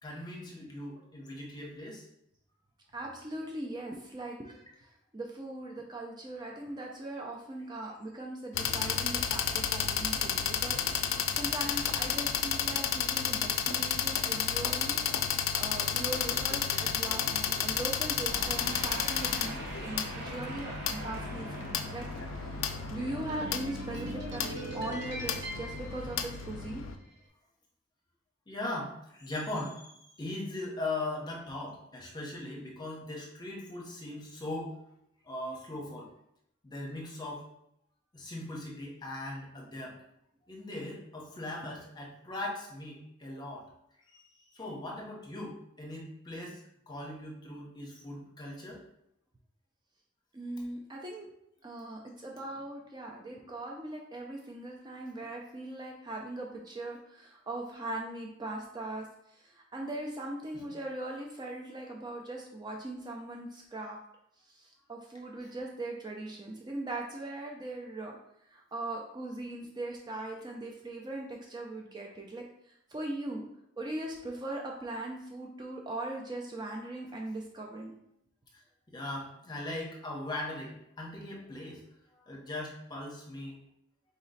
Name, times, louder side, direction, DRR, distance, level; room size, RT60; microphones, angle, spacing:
voice 1, 0.0-2.0 23.9-24.1 28.5-29.8 30.2-34.7 35.2-36.1 36.6-37.4 38.1-40.0 40.5-43.6 44.1-44.2 44.5-46.6 46.9-48.8 78.5-78.6 78.9-81.8 82.3-83.6, left 2 dB, 20° left, -2 dB, 0.9 m, -39 dB
voice 2, 2.9-15.3 15.5-22.1 22.4-22.5 22.9-26.8 50.3-51.3 51.6-64.0 64.5-68.1 68.5-73.4 73.8-77.9, right 2 dB, 20° right, 0 dB, 0.5 m, -40 dB
sound 1, 8.5-27.0, left 8 dB, 85° left, 0.4 m, -32 dB
sound 2, 18.3-26.8, right 1 dB, 60° right, 0.9 m, -42 dB
4.1 x 3.0 x 4.0 m, 0.77 s
head